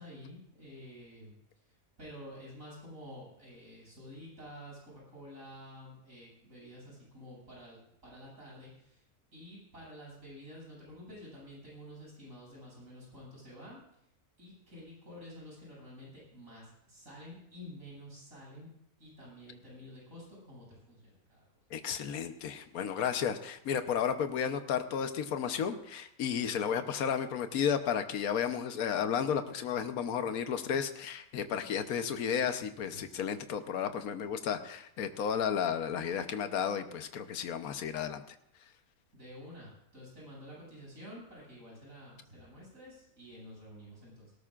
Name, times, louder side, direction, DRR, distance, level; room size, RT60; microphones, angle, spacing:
voice 1, 0.0-9.0 9.3-14.1 14.4-18.7 19.0-21.5 33.7-34.1 39.1-44.3, equal, 65° right, -5 dB, 8.0 m, -50 dB
voice 2, 21.7-38.2, left 7 dB, 80° left, 9 dB, 1.3 m, -33 dB
18.5 x 18.0 x 2.5 m, 0.77 s
omnidirectional pair, 1.5 m